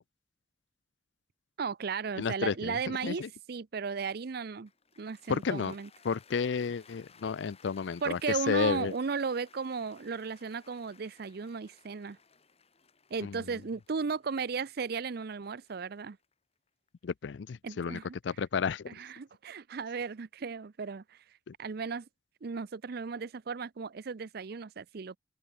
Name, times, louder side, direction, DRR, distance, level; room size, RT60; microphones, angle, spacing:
voice 1, 1.6-4.7 5.0-5.9 8.0-12.2 13.1-16.2 17.6-18.1 18.9-21.2 21.6-22.1 22.4-25.2, right 5 dB, 60° right, 0.5 m, -35 dB
voice 2, 2.2-2.8 3.0-3.3 5.3-5.7 6.0-8.9 13.2-13.4 17.0-18.0 18.2-18.9 21.5-21.6, left 6 dB, 80° left, 0.4 m, -31 dB
Cheering / Applause, 4.7-16.9, left 5 dB, 35° left, 7.4 m, -61 dB
open air
head